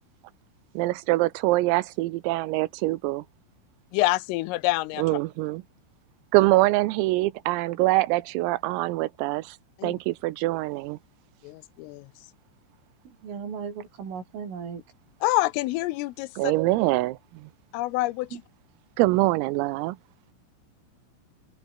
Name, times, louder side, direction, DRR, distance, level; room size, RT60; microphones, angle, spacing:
voice 1, 0.8-3.2 5.0-5.6 6.3-9.6 9.8-11.0 16.4-17.5 19.0-20.0, right 19 dB, 90° right, 3.6 m, -24 dB
voice 2, 3.9-5.2 9.8-10.0 11.4-12.1 15.2-16.5 17.7-18.4, left 19 dB, 90° left, 3.4 m, -27 dB
voice 3, 13.1-14.8 18.3-18.4, right 6 dB, 70° right, 8.5 m, -36 dB
omnidirectional pair, 6.0 m